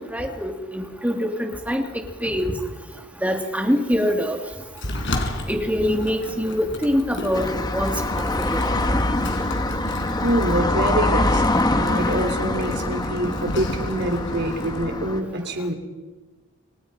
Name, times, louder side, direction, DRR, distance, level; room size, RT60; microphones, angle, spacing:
voice 1, 0.0-1.8 2.2-2.5 3.2-4.4 5.5-8.7, equal, 5° right, 2 dB, 3.0 m, -24 dB
Sliding door, 4.8-14.8, left 1 dB, 55° left, 4.8 m, -32 dB
sound 1, 7.3-15.2, left 1 dB, 20° left, 1.4 m, -24 dB
voice 2, 10.2-15.7, right 1 dB, 50° right, 4 dB, 4.3 m, -25 dB
29.5 x 27.5 x 5.3 m, 1.3 s
head